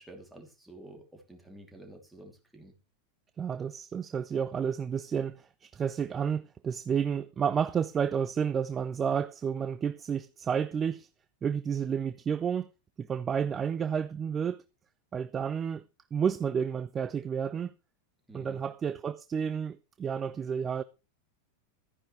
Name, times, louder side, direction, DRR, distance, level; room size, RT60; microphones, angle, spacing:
voice 1, 0.0-2.7 18.3-18.6, right 1 dB, 5° right, 2.8 m, -50 dB
voice 2, 3.4-11.1 11.4-12.7 13.0-14.6 15.1-15.8 16.1-17.7 18.3-20.8, right 7 dB, 20° right, 0.4 m, -31 dB
13.0 x 9.8 x 3.2 m
figure-of-eight pair, 90°, 0 cm